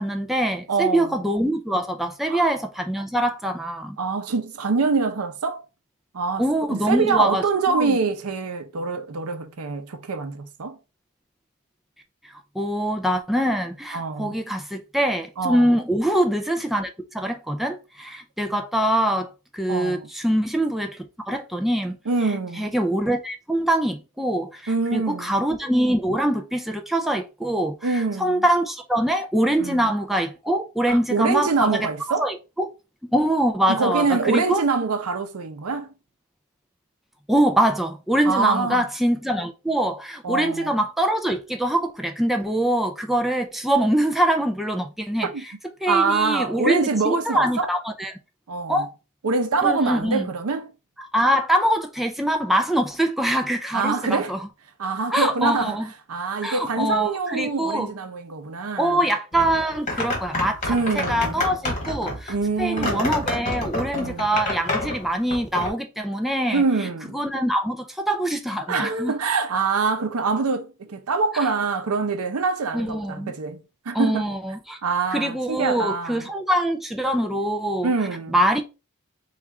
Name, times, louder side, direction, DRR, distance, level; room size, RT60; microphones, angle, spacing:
voice 1, 0.0-4.0 6.4-8.0 12.5-22.0 22.6-32.7 33.1-34.6 37.3-45.5 45.8-48.2 48.7-48.9 49.6-50.3 51.0-54.5 55.1-55.9 56.4-57.9 58.8-66.6 67.1-69.1 71.3-71.5 72.7-73.3 73.9-74.8 75.1-77.9 78.3-78.6, right 1 dB, ahead, 0.3 m, -24 dB
voice 2, 0.7-1.2 2.3-2.5 4.0-5.6 6.1-6.4 6.7-10.8 13.9-14.3 15.4-15.8 19.7-20.1 22.1-22.7 24.7-25.3 27.8-28.4 29.6-29.9 30.9-32.3 33.7-35.9 38.2-38.9 40.2-40.7 45.2-45.4 45.9-47.7 48.5-48.9 49.2-50.7 53.7-54.4 54.8-55.8 56.1-59.0 60.7-61.3 62.3-63.2 63.9-64.4 66.5-67.2 68.7-74.2 74.8-76.3 77.8-78.3, right 4 dB, 80° right, 0.6 m, -25 dB
sound 1, 59.3-65.7, left 2 dB, 30° left, 1.3 m, -28 dB
4.2 x 2.4 x 3.5 m
head